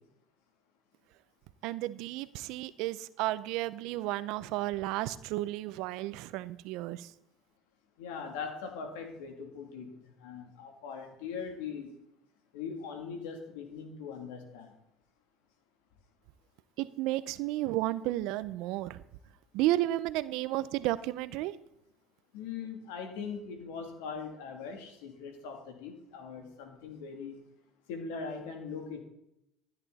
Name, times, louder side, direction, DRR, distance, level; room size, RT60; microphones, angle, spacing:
voice 1, 1.6-7.1 16.8-19.0 19.5-21.6, right 16 dB, 75° right, 16 dB, 0.6 m, -32 dB
voice 2, 8.0-11.9 12.5-14.7 22.3-27.4 27.9-29.0, left 5 dB, 85° left, 4 dB, 2.9 m, -41 dB
13.5 x 10.5 x 4.2 m, 0.82 s
supercardioid pair, 85°, 0 cm